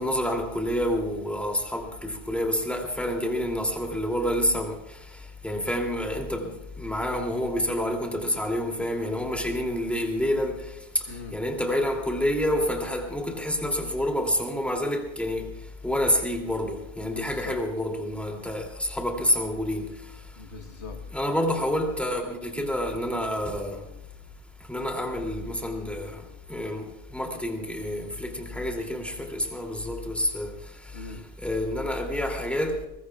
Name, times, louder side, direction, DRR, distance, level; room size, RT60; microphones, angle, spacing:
voice 1, 0.0-4.8 5.4-10.6 11.3-15.5 15.8-19.9 21.1-23.8 24.7-26.2 26.5-30.5 31.4-32.9, equal, ahead, 2.7 m, -28 dB
voice 2, 11.0-11.4 17.0-17.6 20.3-21.8 30.9-31.2, left 3 dB, 75° left, 1.7 m, -43 dB
23.5 x 21.0 x 2.4 m
omnidirectional pair, 1.1 m